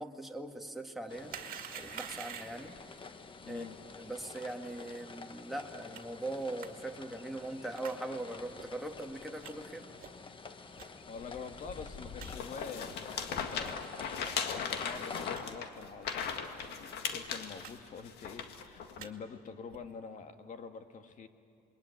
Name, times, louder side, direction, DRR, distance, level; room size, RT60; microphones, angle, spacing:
voice 1, 0.0-1.3 1.7-2.8 3.4-3.7 3.9-9.9, right 2 dB, ahead, 2 dB, 2.0 m, -41 dB
sound 1, 1.1-15.4, left 4 dB, 30° left, 1.3 m, -49 dB
sound 2, 1.3-2.7 5.9-6.0 6.6-6.7 7.7-8.0 8.5-8.7 9.4-9.5 10.0-10.2 10.8-10.9 11.4-11.5 11.8-11.9 12.2-12.3 12.8-13.0 13.6-13.8 14.3-14.4 14.9-15.4 16.0-16.2 16.5-16.6 16.9-17.1 17.6-17.7 18.0-18.4 18.8-19.1 19.7-19.9, right 9 dB, 55° right, 2.1 m, -47 dB
voice 2, 3.4-3.8 11.1-13.8 14.4-21.3, left 5 dB, 50° left, 7 dB, 1.9 m, -46 dB
sound 3, 12.3-19.0, left 7 dB, 75° left, 1.9 m, -38 dB
27.0 x 21.5 x 9.6 m, 2.6 s
cardioid pair, 110°, 17 cm